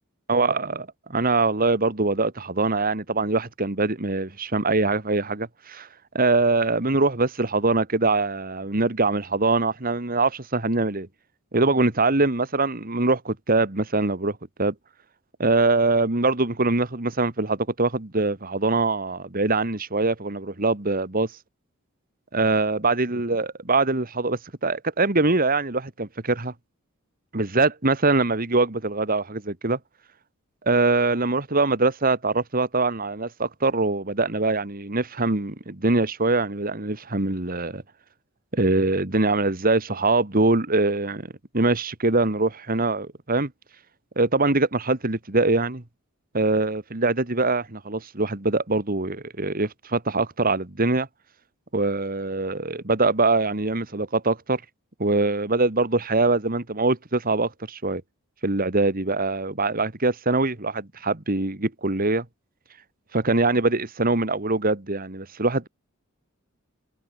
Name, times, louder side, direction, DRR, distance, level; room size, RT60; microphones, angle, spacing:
voice 1, 0.3-0.7 1.1-5.9 6.1-11.1 11.5-14.7 15.4-21.3 22.3-26.5 27.3-29.8 30.7-37.8 38.5-41.3 41.5-43.5 44.2-45.8 46.3-51.1 51.7-54.6 55.0-58.0 58.4-62.3 63.1-65.7, right 3 dB, 45° right, 2.0 m, -23 dB
head